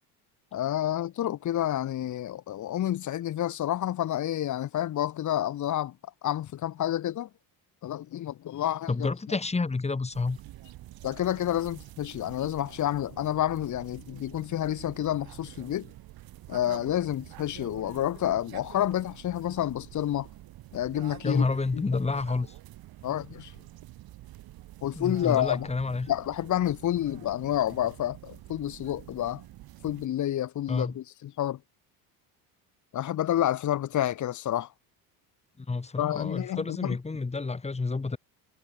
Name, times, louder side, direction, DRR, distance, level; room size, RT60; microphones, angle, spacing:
voice 1, 0.5-6.0 6.2-7.3 7.8-9.1 11.0-15.9 16.5-20.3 20.7-21.4 21.7-21.8 23.0-23.5 24.8-25.7 26.1-29.4 29.8-31.6 32.9-34.7 36.0-37.0, left 12 dB, 45° left, 1.9 m, -29 dB
voice 2, 8.9-10.4 21.2-22.5 24.9-26.1 30.7-31.0 35.6-38.2, left 3 dB, 15° left, 3.3 m, -29 dB
sound 1, 10.1-30.1, right 15 dB, 65° right, 7.1 m, -47 dB
cardioid pair, 110°, 40 cm